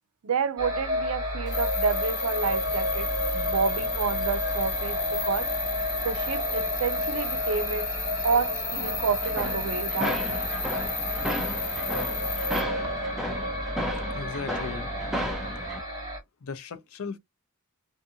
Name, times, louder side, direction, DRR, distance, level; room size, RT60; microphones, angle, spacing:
voice 1, 0.2-3.1 3.3-5.5 6.0-7.9 8.2-10.2, right 5 dB, 70° right, 0.5 m, -29 dB
sound 1, 0.6-16.2, left 1 dB, 15° right, 1.1 m, -31 dB
sound 2, 1.5-12.6, left 4 dB, 55° left, 1.1 m, -34 dB
sound 3, 2.4-15.8, equal, ahead, 0.5 m, -36 dB
voice 2, 14.1-14.9 16.4-17.2, left 5 dB, 70° left, 0.5 m, -36 dB
2.6 x 2.4 x 2.7 m
head